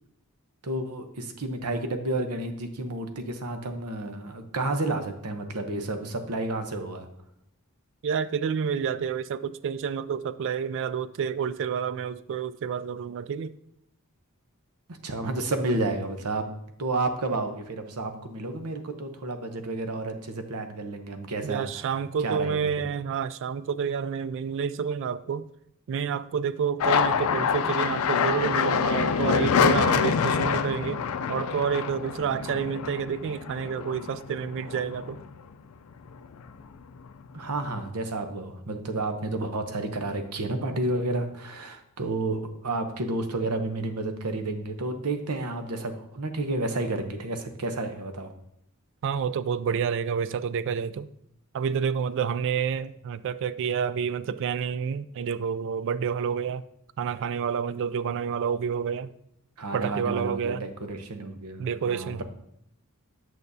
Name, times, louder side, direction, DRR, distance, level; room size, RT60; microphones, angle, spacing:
voice 1, 0.6-7.1 14.9-16.5 16.8-21.9 22.2-22.7 37.3-48.3 59.6-62.2, right 2 dB, 85° right, 0.8 m, -31 dB
voice 2, 8.0-13.5 21.4-25.5 25.9-31.0 31.3-35.2 49.0-51.1 51.5-56.6 57.0-59.1 59.7-60.6 61.6-62.2, right 7 dB, 55° right, 0.3 m, -29 dB
sound 1, 26.8-35.5 35.9-36.7 37.0-37.9, left 6 dB, 70° left, 0.4 m, -26 dB
8.6 x 6.4 x 2.7 m
head